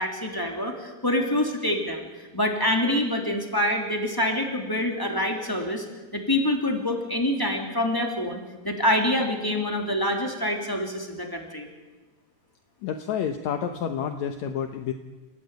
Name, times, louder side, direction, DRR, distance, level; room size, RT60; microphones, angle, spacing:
voice 1, 0.0-2.1 2.3-5.8 6.1-11.7, left 1 dB, 5° left, 1 dB, 2.9 m, -26 dB
voice 2, 12.8-14.9, left 8 dB, 65° left, 6 dB, 1.9 m, -29 dB
29.0 x 16.0 x 9.3 m, 1.2 s
omnidirectional pair, 4.4 m